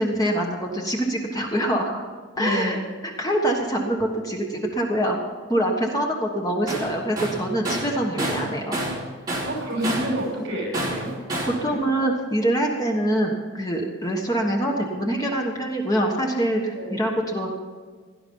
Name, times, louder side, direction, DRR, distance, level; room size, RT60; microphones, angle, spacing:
voice 1, 0.0-2.0 2.4-2.8 3.0-5.2 5.5-8.8 11.6-17.5, right 1 dB, 20° left, 1 dB, 1.3 m, -24 dB
voice 2, 2.4-2.8 9.4-11.1 11.7-11.8 16.7-16.9, equal, 60° right, 0 dB, 5.8 m, -28 dB
Tools, 6.7-6.9 7.2-9.0 9.3-10.2 10.7-11.6, right 1 dB, 20° right, 3.9 m, -28 dB
17.0 x 12.0 x 5.5 m, 1.5 s
head